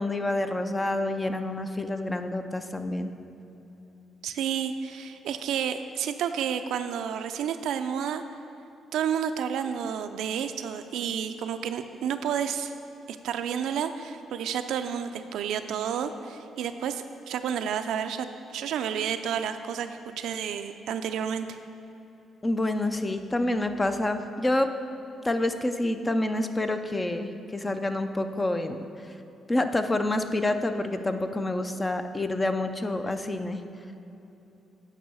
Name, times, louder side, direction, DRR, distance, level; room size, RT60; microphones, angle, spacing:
voice 1, 0.0-3.1 22.4-24.7 25.2-28.8 29.5-33.6, left 1 dB, 20° left, 8 dB, 0.6 m, -28 dB
voice 2, 4.2-8.2 8.9-12.7 13.1-18.3 18.5-21.6, right 8 dB, 80° right, 8 dB, 0.4 m, -30 dB
9.0 x 5.5 x 6.2 m, 2.9 s
cardioid pair, 90°, 0 cm